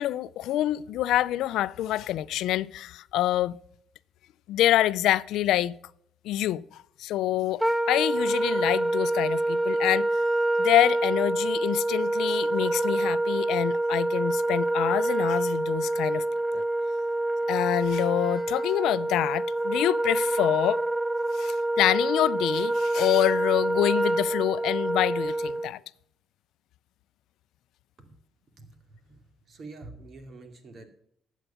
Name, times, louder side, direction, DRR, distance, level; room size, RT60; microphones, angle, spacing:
voice 1, 0.0-3.5 4.5-5.7 6.2-6.6 7.0-7.6 7.9-10.1 10.6-16.3 16.5-16.6 17.5-20.8 21.3-25.8, left 13 dB, 85° left, 0.4 m, -26 dB
Wind instrument woodwind instrument, 7.6-25.7, right 1 dB, 10° right, 0.5 m, -26 dB
voice 2, 28.6-30.9, right 3 dB, 55° right, 2.5 m, -47 dB
12.0 x 8.1 x 5.8 m
cardioid pair, 90°, 0 cm